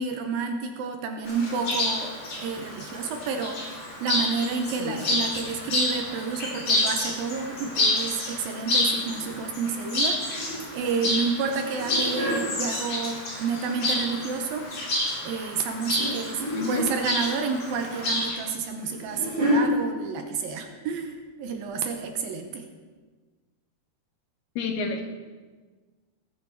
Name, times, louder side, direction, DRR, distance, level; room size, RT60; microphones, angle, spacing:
voice 1, 0.0-14.7 15.2-22.7, right 5 dB, 80° right, 5 dB, 2.5 m, -30 dB
Chirp tweet, 1.2-18.4, left 1 dB, 45° left, 4.3 m, -29 dB
sound 1, 5.8-6.0 8.9-9.4 9.7-10.9 11.5-12.4 13.4-14.2 14.7-15.0 16.0-16.1 16.4-16.9 18.4-19.6 20.5-20.7 21.0-21.1 21.6-21.7, equal, 15° right, 4.8 m, -30 dB
voice 2, 16.5-16.9 24.6-25.0, left 4 dB, 90° left, 3 dB, 3.3 m, -30 dB
20.0 x 8.2 x 4.6 m, 1.4 s
omnidirectional pair, 4.4 m